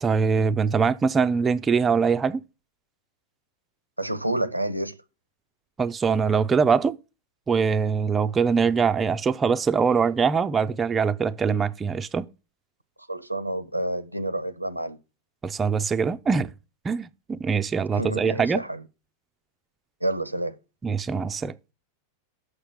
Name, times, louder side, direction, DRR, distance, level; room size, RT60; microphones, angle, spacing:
voice 1, 0.0-2.4 5.8-7.0 7.5-12.3 15.4-16.5 16.8-18.6 20.8-21.6, right 5 dB, 15° right, 0.4 m, -23 dB
voice 2, 4.0-5.0 13.1-15.0 17.9-18.8 20.0-20.6, right 1 dB, 85° right, 0.6 m, -29 dB
6.5 x 5.6 x 7.2 m
figure-of-eight pair, 90°, 0 cm